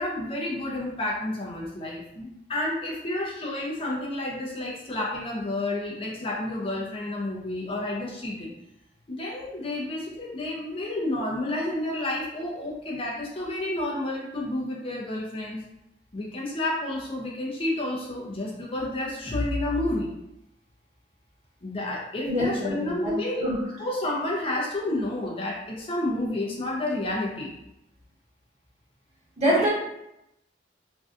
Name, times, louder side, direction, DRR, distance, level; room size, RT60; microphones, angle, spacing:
voice 1, 0.0-8.5 9.1-15.6 16.1-20.1 21.6-23.5 23.8-27.5 29.5-29.7, left 1 dB, 30° left, -3 dB, 0.5 m, -30 dB
voice 2, 22.2-23.6 29.4-29.7, equal, 35° right, -6 dB, 1.2 m, -25 dB
2.5 x 2.2 x 3.6 m, 0.86 s
head